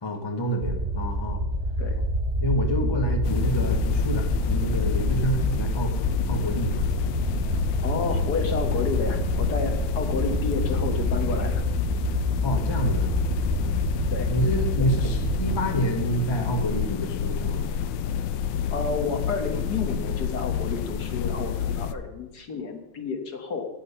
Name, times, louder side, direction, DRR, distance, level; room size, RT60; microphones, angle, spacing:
voice 1, 0.0-1.5 2.4-5.9 6.3-6.9 12.4-13.1 14.3-17.6, right 1 dB, 20° left, 3 dB, 0.8 m, -28 dB
sound 1, 0.6-15.6, equal, 20° right, 1.6 m, -27 dB
sound 2, 3.2-21.9, left 8 dB, 75° left, 1.1 m, -29 dB
voice 2, 7.8-11.6 14.1-14.3 18.7-23.7, left 4 dB, 50° left, 4 dB, 1.7 m, -31 dB
12.0 x 8.6 x 5.6 m, 0.96 s
omnidirectional pair, 2.4 m